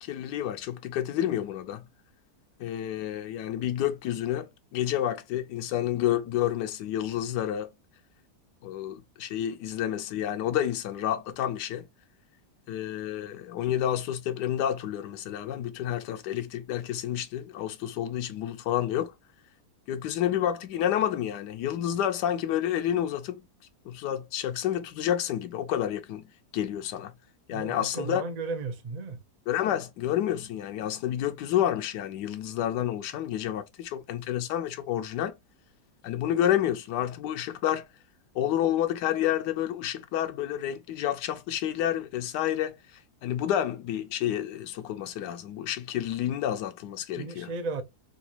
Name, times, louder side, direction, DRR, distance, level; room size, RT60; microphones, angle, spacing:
voice 1, 0.0-1.8 2.6-7.7 8.6-11.9 12.7-19.1 19.9-23.4 23.9-26.2 26.5-27.1 27.5-28.2 29.5-35.3 36.0-37.9 38.3-42.8 43.2-47.5, left 11 dB, 85° left, 1.2 m, -29 dB
voice 2, 27.5-29.2 47.1-47.8, right 4 dB, 65° right, 0.4 m, -34 dB
3.9 x 2.4 x 2.8 m
omnidirectional pair, 1.8 m